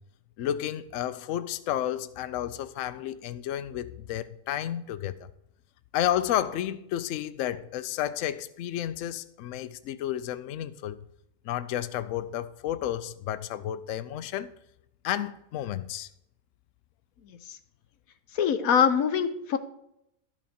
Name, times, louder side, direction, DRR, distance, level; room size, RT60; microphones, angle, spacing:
voice 1, 0.4-5.3 5.9-11.0 11.4-14.5 15.0-16.1, left 11 dB, 70° left, 0.9 m, -31 dB
voice 2, 18.3-19.6, left 7 dB, 90° left, 1.2 m, -23 dB
12.0 x 6.0 x 4.3 m
omnidirectional pair, 1.4 m